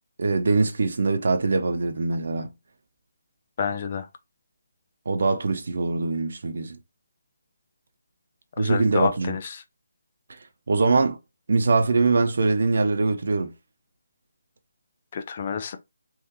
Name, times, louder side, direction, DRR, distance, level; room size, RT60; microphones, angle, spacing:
voice 1, 0.2-2.5 5.1-6.8 8.6-9.3 10.7-11.2 11.5-13.5, right 3 dB, 65° right, 0.8 m, -22 dB
voice 2, 3.6-4.1 8.6-9.6 15.1-15.8, left 6 dB, 40° left, 0.6 m, -28 dB
3.6 x 2.6 x 3.1 m
figure-of-eight pair, 150°, 0 cm